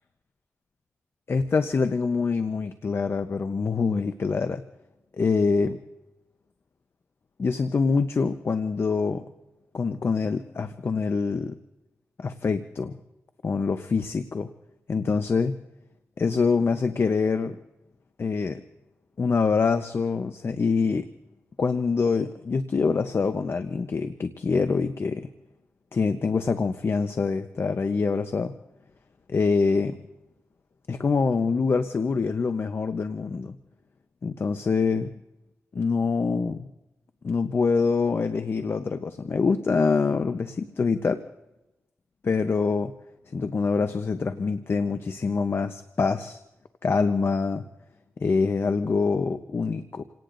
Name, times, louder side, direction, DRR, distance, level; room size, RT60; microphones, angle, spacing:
voice 1, 1.3-4.6 5.2-5.8 7.4-9.2 9.7-11.6 12.2-13.0 13.4-14.5 14.9-15.6 16.2-17.6 18.2-18.6 19.2-21.1 21.6-25.3 25.9-28.5 29.3-30.0 30.9-33.5 34.2-35.1 35.7-36.7 37.2-41.2 42.2-42.9 43.3-46.4 46.8-47.6 48.2-50.0, left 4 dB, 55° left, 9 dB, 0.8 m, -25 dB
29.0 x 18.0 x 2.6 m, 0.96 s
cardioid pair, 75°, 5 cm